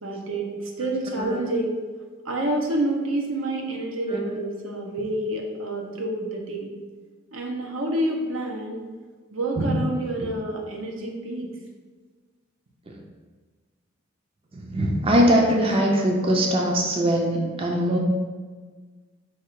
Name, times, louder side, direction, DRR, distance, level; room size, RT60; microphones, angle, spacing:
voice 1, 0.0-1.7 2.2-6.7 7.3-8.8 9.3-11.5, right 1 dB, 90° right, 0 dB, 0.8 m, -28 dB
voice 2, 14.5-18.0, equal, 30° right, 0 dB, 0.5 m, -21 dB
4.6 x 2.4 x 4.5 m, 1.4 s
head